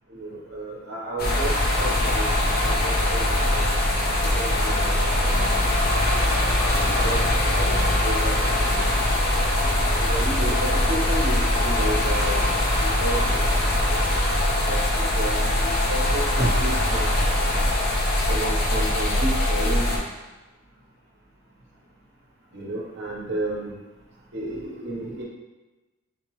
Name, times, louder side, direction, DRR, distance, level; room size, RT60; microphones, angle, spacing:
voice 1, 0.1-1.5 1.8-3.8 4.4-5.8 6.8-8.9 9.9-13.4 13.9-14.0 14.6-17.1 18.3-20.1 22.5-23.8 24.3-25.2, right 1 dB, 55° right, -4 dB, 0.9 m, -32 dB
sound 1, 1.2-20.0, left 1 dB, 50° left, 0.7 m, -22 dB
3.8 x 2.9 x 3.1 m, 1.1 s
head